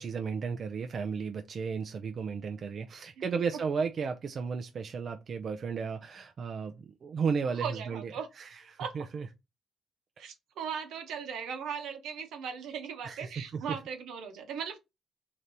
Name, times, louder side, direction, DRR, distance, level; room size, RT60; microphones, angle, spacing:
voice 1, 0.0-9.3 13.0-13.8, right 5 dB, 50° right, 0.4 m, -34 dB
voice 2, 7.5-8.3 8.8-9.0 10.2-14.8, right 7 dB, 85° right, 0.9 m, -38 dB
3.3 x 2.8 x 3.8 m
cardioid pair, 90°, 0 cm